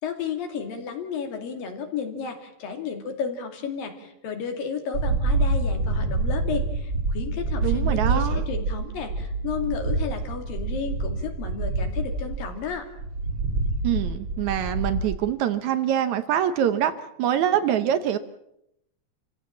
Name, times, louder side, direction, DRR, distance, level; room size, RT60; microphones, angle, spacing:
voice 1, 0.0-12.9, left 6 dB, 70° left, 5 dB, 4.1 m, -33 dB
sound 1, 4.9-15.2, right 3 dB, 40° right, 2.9 m, -27 dB
voice 2, 7.6-8.5 13.8-16.9 17.2-18.2, right 10 dB, 70° right, 11 dB, 1.9 m, -24 dB
28.0 x 16.0 x 7.4 m, 0.79 s
omnidirectional pair, 4.2 m